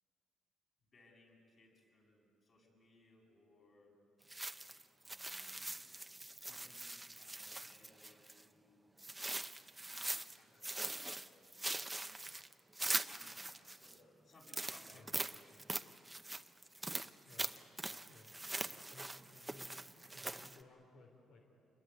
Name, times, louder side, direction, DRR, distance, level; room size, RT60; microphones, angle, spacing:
voice 1, 0.9-4.0 5.0-5.8 6.4-9.0 9.6-11.5 13.0-15.4, left 2 dB, 45° left, -1 dB, 7.7 m, -66 dB
sound 1, 4.3-8.4 9.0-10.4 10.6-14.0 14.4-20.6, right 2 dB, 10° right, 0.7 m, -42 dB
voice 2, 17.2-17.5 18.1-18.3 18.9-21.4, left 2 dB, 85° left, 1 dB, 3.4 m, -61 dB
28.5 x 21.5 x 9.3 m, 2.8 s
cardioid pair, 135°, 0 cm